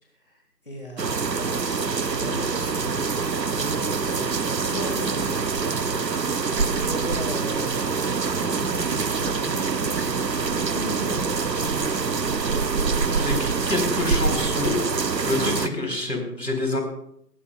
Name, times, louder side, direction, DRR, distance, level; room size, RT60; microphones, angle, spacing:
voice 1, 0.0-7.7 8.4-12.6 15.6-15.9, left 1 dB, 35° left, 0 dB, 1.4 m, -38 dB
sound 1, 1.0-15.7, right 4 dB, 80° right, 0.8 m, -25 dB
voice 2, 13.1-14.8 15.2-16.8, left 2 dB, 75° left, 3 dB, 3.9 m, -27 dB
20.0 x 11.0 x 2.3 m, 0.72 s
figure-of-eight pair, 170°, 49 cm